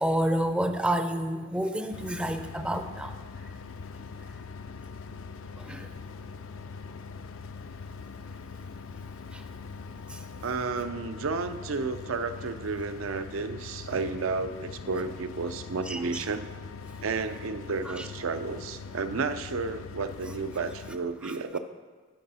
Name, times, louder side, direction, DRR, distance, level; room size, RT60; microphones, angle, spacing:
voice 1, 0.0-3.1 5.6-5.9 9.3-9.4 10.1-10.2 15.9-16.2 18.0-18.1 21.2-21.3, right 1 dB, 5° right, 7 dB, 0.4 m, -29 dB
sound 1, 1.9-21.0, left 5 dB, 75° left, 0.4 m, -42 dB
voice 2, 10.4-16.5 17.0-21.6, right 4 dB, 80° right, 11 dB, 0.5 m, -32 dB
11.5 x 4.7 x 5.5 m, 1.4 s
head